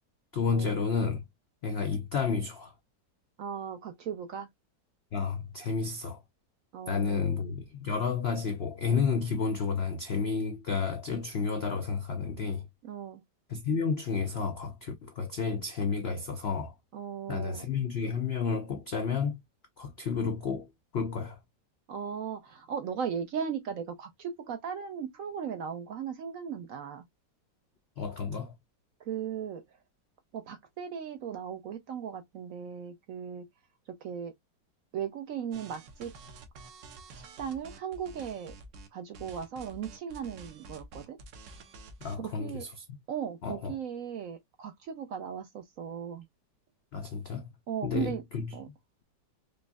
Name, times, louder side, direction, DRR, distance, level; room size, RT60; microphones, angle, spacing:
voice 1, 0.3-1.2 1.6-2.7 5.1-6.2 6.9-12.6 13.5-16.7 17.3-19.4 19.8-20.7 20.9-21.4 28.0-28.5 42.0-43.0 43.4-43.7 46.9-47.5 47.8-48.6, left 5 dB, 75° left, 0.5 m, -31 dB
voice 2, 3.4-4.5 6.7-7.4 12.8-13.2 16.9-17.7 21.9-27.0 29.0-29.6 30.3-33.5 33.9-34.3 34.9-36.1 37.1-38.5 38.9-41.2 42.1-42.7 43.1-46.2 47.7-48.2 48.5-48.7, right 8 dB, 65° right, 0.8 m, -37 dB
sound 1, 35.5-38.9 39.1-42.3, right 2 dB, 80° right, 1.5 m, -49 dB
5.2 x 2.5 x 2.2 m
omnidirectional pair, 1.9 m